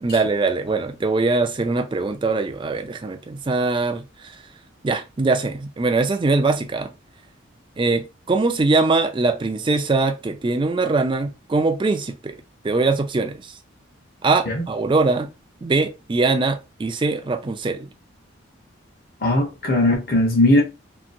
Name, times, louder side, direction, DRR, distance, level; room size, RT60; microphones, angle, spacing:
voice 1, 0.0-4.4 4.8-6.9 7.8-12.4 12.6-13.5 14.2-15.3 15.6-17.9, right 3 dB, 25° right, 0.3 m, -22 dB
voice 2, 19.2-20.6, left 1 dB, 45° left, 0.9 m, -18 dB
2.8 x 2.6 x 2.6 m
head